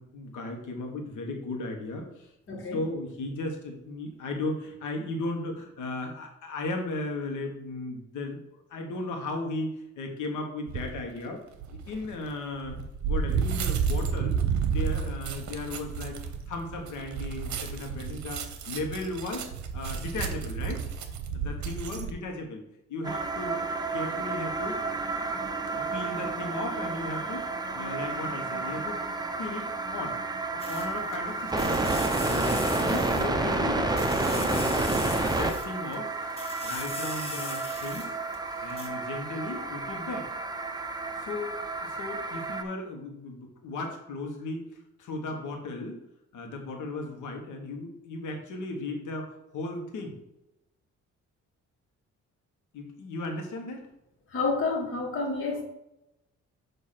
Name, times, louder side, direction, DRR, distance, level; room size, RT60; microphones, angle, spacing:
voice 1, 0.0-2.3 2.7-8.4 8.7-11.4 11.7-12.8 13.0-14.4 14.6-16.2 16.5-19.5 19.7-20.8 21.3-22.6 22.9-24.8 25.7-30.2 30.5-31.9 32.3-33.9 34.2-34.7 35.4-36.2 36.6-38.1 38.6-40.3 41.2-41.5 41.8-44.6 45.0-46.0 46.3-50.2 52.7-53.9, left 2 dB, 80° left, 3 dB, 1.5 m, -36 dB
voice 2, 2.5-2.8 54.3-55.6, left 3 dB, 40° left, -2 dB, 1.6 m, -29 dB
sound 1, 10.7-11.0 11.6-22.1, right 6 dB, 70° right, 0.9 m, -31 dB
sound 2, 23.0-42.6, right 2 dB, 15° right, 0.7 m, -30 dB
sound 3, 30.6-31.2 31.5-33.6 33.9-36.0 36.3-38.4 38.7-38.9, left 2 dB, 20° left, 1.5 m, -40 dB
6.9 x 3.0 x 5.8 m, 0.88 s
cardioid pair, 90°, 30 cm